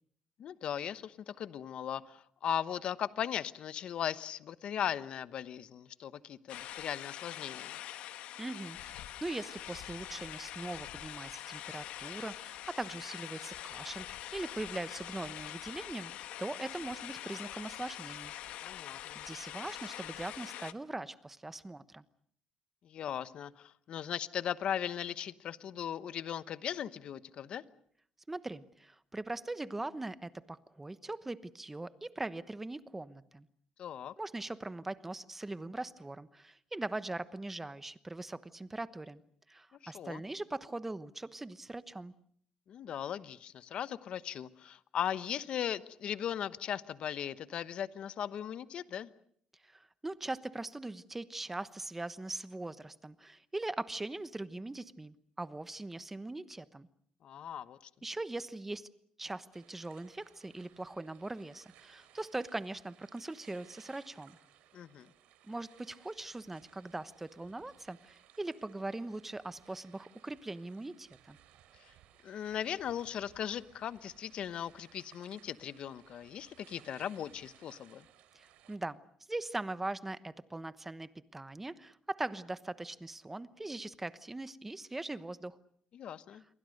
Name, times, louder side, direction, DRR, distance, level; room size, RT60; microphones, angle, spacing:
voice 1, 0.4-7.8 18.6-19.2 22.8-27.6 33.8-34.1 39.8-40.2 42.7-49.1 57.2-57.9 64.7-65.1 72.2-78.0 85.9-86.4, left 9 dB, 55° left, 15 dB, 1.1 m, -38 dB
sound 1, 6.5-20.7, left 12 dB, 75° left, 1.2 m, -44 dB
voice 2, 8.4-16.1 16.4-18.3 19.1-22.0 28.3-33.5 34.2-39.2 39.5-42.1 49.6-56.9 58.0-58.9 59.2-64.4 65.5-71.4 78.3-79.0 79.3-85.6, right 2 dB, 10° right, 14 dB, 1.0 m, -41 dB
sound 2, 59.5-78.8, right 11 dB, 85° right, 3.2 m, -62 dB
28.5 x 23.0 x 6.6 m, 0.63 s
cardioid pair, 135°, 2 cm